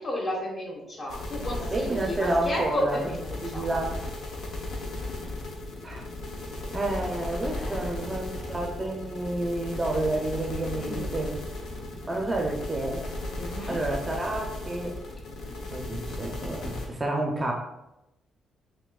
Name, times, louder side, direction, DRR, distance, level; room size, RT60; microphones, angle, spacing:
voice 1, 0.0-3.7 7.5-7.9 10.7-11.2 13.3-13.8, left 1 dB, 40° left, -2 dB, 1.4 m, -33 dB
sound 1, 1.1-16.9, left 2 dB, 65° left, 0.9 m, -36 dB
voice 2, 1.7-3.0 3.4-4.0 5.8-6.0 6.7-11.4 12.1-13.1 13.7-15.0 15.7-17.5, right 2 dB, 20° right, 0 dB, 0.6 m, -30 dB
5.8 x 2.7 x 2.3 m, 0.90 s
cardioid pair, 110°, 0 cm